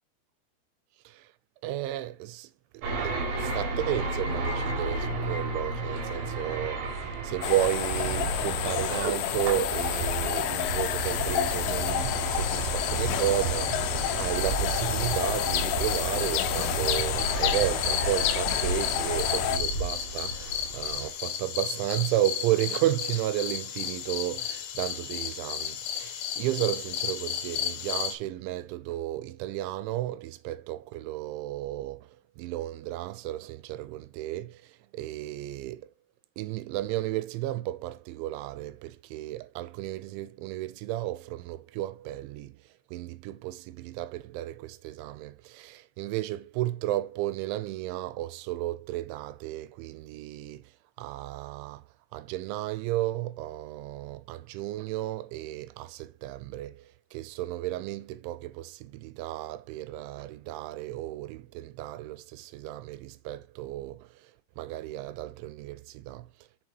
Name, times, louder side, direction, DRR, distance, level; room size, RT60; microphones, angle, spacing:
voice 1, 1.6-35.9 36.4-51.8 52.1-66.3, right 14 dB, 85° right, 3.0 m, -33 dB
sound 1, 2.8-21.1, right 3 dB, 60° right, 2.7 m, -32 dB
sound 2, 7.4-19.6, left 11 dB, 90° left, 3.2 m, -30 dB
sound 3, 9.3-28.1, left 9 dB, 75° left, 2.4 m, -35 dB
7.0 x 4.1 x 4.5 m
omnidirectional pair, 5.4 m